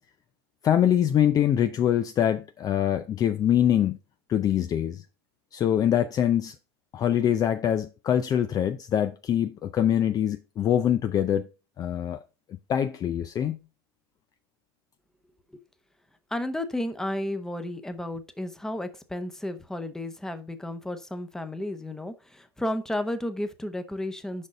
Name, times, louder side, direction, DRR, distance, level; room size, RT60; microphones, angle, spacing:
voice 1, 0.6-4.0 4.3-5.0 5.5-6.5 6.9-11.5 11.8-12.2 12.7-13.6, left 10 dB, 30° left, 0.5 m, -24 dB
voice 2, 16.3-24.5, left 1 dB, 5° left, 0.9 m, -32 dB
6.4 x 5.3 x 5.1 m
supercardioid pair, 125°, 14 cm